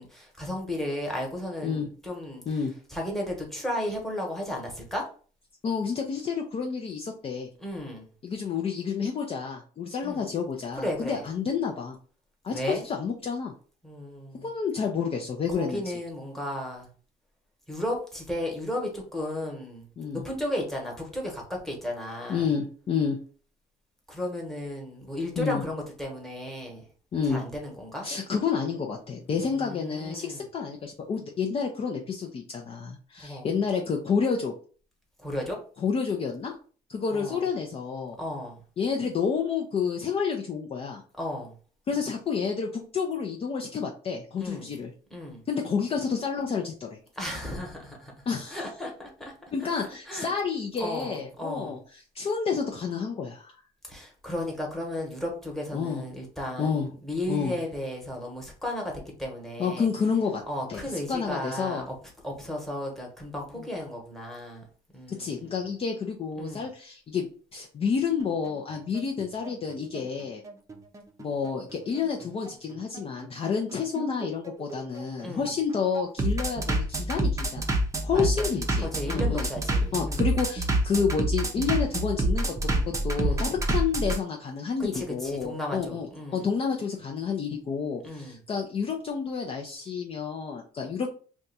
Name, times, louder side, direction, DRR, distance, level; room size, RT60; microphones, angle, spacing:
voice 1, 0.0-2.4 2.9-5.1 7.6-8.1 10.0-10.2 10.7-11.2 12.5-12.8 13.8-14.5 15.5-16.9 17.7-19.9 20.1-22.5 24.1-26.8 27.2-28.1 29.5-30.4 33.2-33.5 35.2-35.6 37.1-37.5 38.2-38.6 41.2-41.5 44.4-44.7 45.1-45.4 47.1-49.3 50.1-50.3 50.8-51.7 53.9-58.9 59.2-59.9 60.5-61.9 62.2-64.6 64.9-65.6 66.4-66.7 75.2-75.5 78.1-78.5 78.8-80.3 83.2-83.5 84.8-86.5 88.0-88.4, left 1 dB, ahead, 1.1 m, -34 dB
voice 2, 5.6-7.5 8.2-12.0 12.4-13.5 14.4-15.8 20.0-20.2 22.3-23.2 25.4-25.6 27.1-27.4 28.0-34.5 35.8-36.5 36.9-38.2 38.8-41.0 41.9-44.9 45.5-47.0 48.3-48.6 49.5-53.5 55.7-56.0 56.6-56.9 57.3-57.6 59.6-60.4 60.7-60.8 61.1-61.8 63.6-63.7 65.2-70.4 71.2-77.6 78.0-79.5 79.9-91.1, left 6 dB, 35° left, 0.5 m, -29 dB
Bass drum, 68.2-84.2, right 1 dB, 20° right, 0.6 m, -28 dB
2.6 x 2.3 x 4.0 m
cardioid pair, 110°, 17 cm